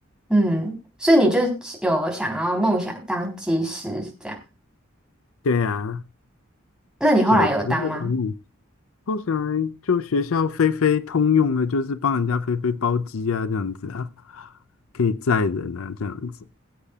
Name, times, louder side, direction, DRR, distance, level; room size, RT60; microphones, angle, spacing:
voice 1, 0.3-0.7 1.0-4.4 7.0-8.1, right 1 dB, 5° right, 3.7 m, -21 dB
voice 2, 5.4-6.0 7.3-8.3 9.1-14.5 14.9-16.3, left 5 dB, 80° left, 0.5 m, -23 dB
22.5 x 8.3 x 2.4 m
head